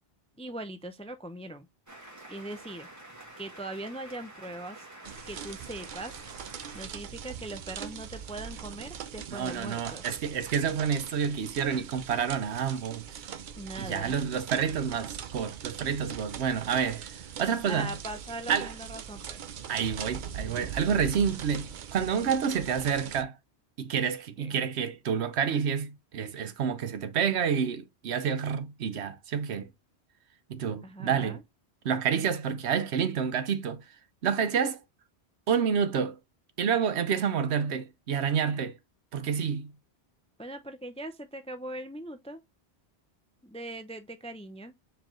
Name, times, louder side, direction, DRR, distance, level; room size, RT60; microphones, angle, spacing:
voice 1, 0.4-1.7 2.3-2.9 3.4-4.9 5.3-6.2 6.7-10.0 13.6-14.1 17.6-19.4 24.4-24.5 30.8-31.4 40.4-42.4 43.4-44.8, right 1 dB, 10° left, 0.3 m, -40 dB
sound 1, 1.9-6.9, right 1 dB, 15° right, 1.7 m, -48 dB
sound 2, 5.0-23.2, right 8 dB, 55° right, 0.6 m, -41 dB
voice 2, 9.3-13.0 13.8-17.1 17.4-18.0 18.5-18.7 19.7-23.3 23.8-29.7 30.5-31.4 31.8-33.8 34.2-34.8 35.5-36.2 36.6-38.8 39.1-39.7, right 7 dB, 85° right, 1.0 m, -29 dB
4.6 x 3.7 x 3.0 m
omnidirectional pair, 1.1 m